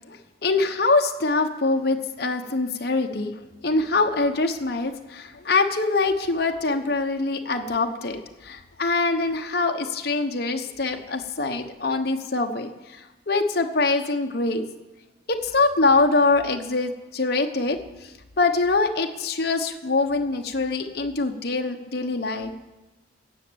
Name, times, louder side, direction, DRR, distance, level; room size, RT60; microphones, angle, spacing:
voice 1, 0.1-3.3 3.6-14.6 15.3-17.8 18.4-22.5, left 3 dB, 55° left, 4 dB, 1.0 m, -24 dB
14.5 x 6.5 x 8.6 m, 1.1 s
head